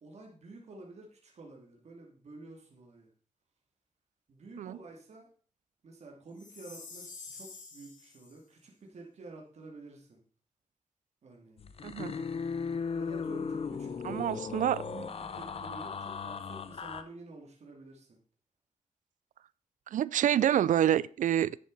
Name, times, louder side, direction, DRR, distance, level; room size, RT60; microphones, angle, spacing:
voice 1, 0.0-3.1 4.3-5.3 5.8-10.2 11.2-11.6 12.9-15.1 15.3-18.2, right 2 dB, 60° right, 2.6 m, -50 dB
Chime, 6.4-8.4, left 4 dB, 85° left, 2.6 m, -48 dB
sound 1, 11.6-17.0, left 5 dB, 50° left, 0.9 m, -37 dB
voice 2, 11.8-12.1 14.0-14.8 19.9-21.6, right 10 dB, 90° right, 0.4 m, -27 dB
10.0 x 9.7 x 4.1 m
wide cardioid pair, 135°, 13 cm